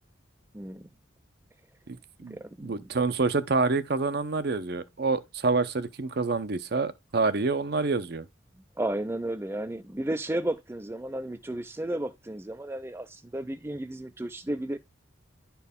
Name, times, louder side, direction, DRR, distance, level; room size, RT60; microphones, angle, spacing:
voice 1, 0.5-0.9 2.3-2.9 8.8-14.8, right 1 dB, 10° right, 0.3 m, -33 dB
voice 2, 1.9-8.2, right 3 dB, 55° right, 0.6 m, -27 dB
10.5 x 4.6 x 3.5 m
head